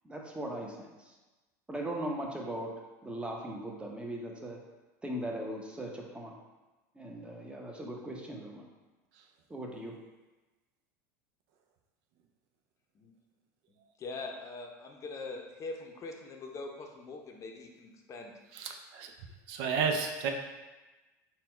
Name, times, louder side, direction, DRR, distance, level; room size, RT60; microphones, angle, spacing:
voice 1, 0.0-1.1 1.7-2.7 3.0-4.6 5.0-6.3 7.0-8.7 9.5-9.9, right 1 dB, 10° right, 0 dB, 0.8 m, -39 dB
voice 2, 13.7-18.3, left 3 dB, 35° left, 2 dB, 0.6 m, -43 dB
voice 3, 18.5-19.1 19.5-20.3, right 5 dB, 65° right, 4 dB, 0.5 m, -31 dB
4.2 x 2.2 x 4.3 m, 1.2 s
hypercardioid pair, 95°, 9 cm